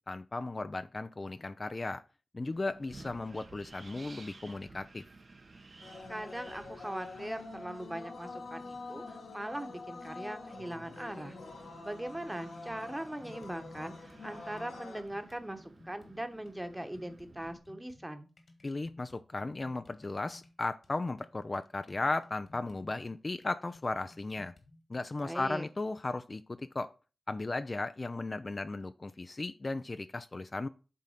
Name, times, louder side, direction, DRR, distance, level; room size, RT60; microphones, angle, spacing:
voice 1, 0.1-2.0 2.3-5.0 18.6-24.5 24.9-26.9 27.3-30.7, left 2 dB, 40° left, 0.4 m, -36 dB
Wind, 2.4-17.6, right 3 dB, 55° right, 1.2 m, -55 dB
sound 1, 5.8-15.0, left 3 dB, 80° left, 1.5 m, -46 dB
voice 2, 6.1-11.4 11.8-18.3 25.2-25.7, right 1 dB, 15° right, 1.2 m, -40 dB
sound 2, 13.2-14.7 15.1-16.5 16.9-25.3, left 2 dB, 55° left, 1.7 m, -59 dB
7.5 x 3.9 x 5.7 m
cardioid pair, 50°, 0 cm